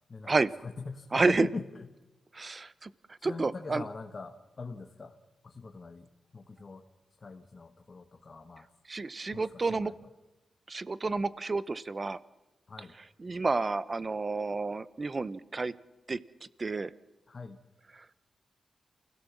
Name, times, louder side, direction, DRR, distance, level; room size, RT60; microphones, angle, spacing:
voice 1, 0.1-1.9 3.2-5.2 5.4-6.8 7.2-8.7 9.3-9.9 12.7-12.9 17.3-17.6, left 4 dB, 35° left, 5 dB, 1.4 m, -42 dB
voice 2, 1.1-1.5 2.3-2.9 3.2-3.8 8.9-9.9 10.7-12.2 13.2-15.7 16.1-16.2 16.6-16.9 18.0-18.1, right 3 dB, 30° right, 17 dB, 0.8 m, -30 dB
28.5 x 16.5 x 7.3 m, 1.1 s
wide cardioid pair, 135°, 0 cm